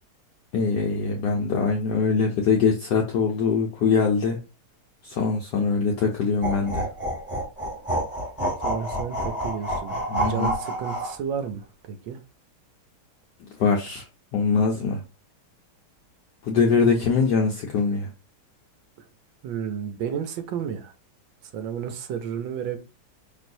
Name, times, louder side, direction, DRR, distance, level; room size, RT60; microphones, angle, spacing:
voice 1, 0.5-4.4 5.0-6.9 10.1-10.5 13.6-14.0 14.3-15.0 16.4-18.1, left 5 dB, 70° left, 1.0 m, -23 dB
sound 1, 6.4-11.2, right 1 dB, 5° right, 1.3 m, -28 dB
voice 2, 8.6-12.2 19.4-20.9 21.4-22.8, right 7 dB, 70° right, 1.3 m, -32 dB
5.3 x 3.1 x 2.6 m
omnidirectional pair, 2.4 m